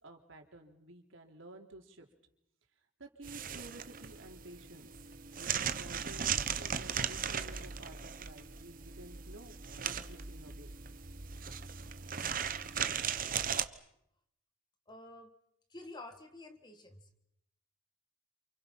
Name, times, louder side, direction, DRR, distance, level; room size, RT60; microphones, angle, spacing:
voice 1, 0.0-2.1 3.0-4.9 5.4-10.7, right 1 dB, 75° right, 3 dB, 3.6 m, -52 dB
sound 1, 3.2-13.6, right 7 dB, 45° right, 1.1 m, -37 dB
voice 2, 14.9-15.3 15.7-17.3, left 2 dB, 20° left, 7 dB, 1.8 m, -50 dB
28.5 x 28.5 x 5.8 m, 0.79 s
head